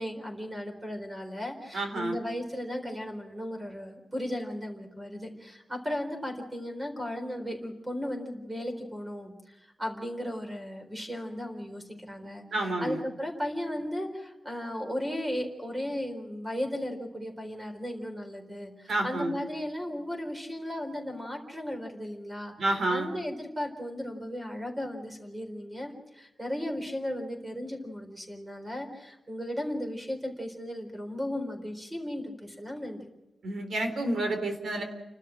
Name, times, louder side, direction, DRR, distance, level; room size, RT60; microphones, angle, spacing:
voice 1, 0.0-33.1, left 1 dB, 15° right, 4 dB, 4.2 m, -36 dB
voice 2, 1.7-2.2 12.5-13.0 18.9-19.3 22.6-23.1 33.4-34.8, right 2 dB, 70° right, 5 dB, 4.0 m, -29 dB
29.5 x 13.0 x 7.7 m, 0.97 s
wide cardioid pair, 160°, 0 cm